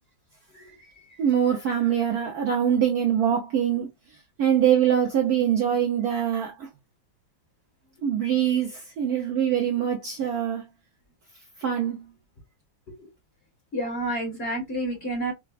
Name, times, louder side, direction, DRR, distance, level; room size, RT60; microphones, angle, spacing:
voice 1, 1.2-3.9 4.4-6.7 8.0-10.7 11.6-12.0, right 9 dB, 65° right, 1.0 m, -23 dB
voice 2, 13.7-15.3, right 1 dB, 35° left, 1.5 m, -29 dB
4.9 x 2.3 x 2.3 m
omnidirectional pair, 2.2 m